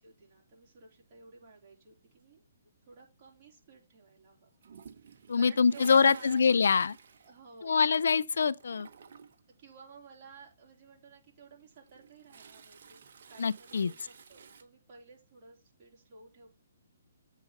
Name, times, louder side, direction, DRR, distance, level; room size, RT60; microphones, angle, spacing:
voice 1, 0.0-2.5 2.9-4.5 5.0-6.8 7.2-7.9 9.6-16.5, right 4 dB, 35° right, 3.4 m, -54 dB
Toilet flush, 4.6-8.1 8.3-9.5 11.6-14.6, right 6 dB, 60° right, 1.1 m, -53 dB
voice 2, 5.3-6.9 7.6-8.9 13.4-13.9, left 5 dB, 75° left, 0.4 m, -25 dB
8.3 x 3.9 x 5.1 m
hypercardioid pair, 150°, 0 cm